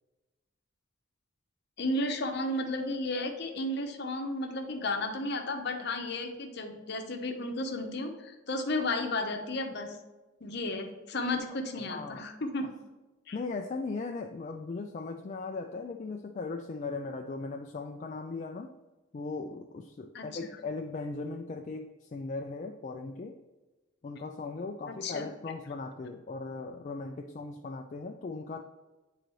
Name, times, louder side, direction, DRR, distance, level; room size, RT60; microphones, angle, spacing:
voice 1, 1.8-10.0 10.4-12.7 13.3-13.4 20.1-20.3 24.9-25.3, left 2 dB, 55° left, 4 dB, 0.8 m, -33 dB
voice 2, 11.8-12.3 13.3-18.7 19.1-23.4 24.0-28.6, left 3 dB, 35° left, 3 dB, 0.3 m, -38 dB
8.9 x 3.9 x 3.1 m, 1.1 s
head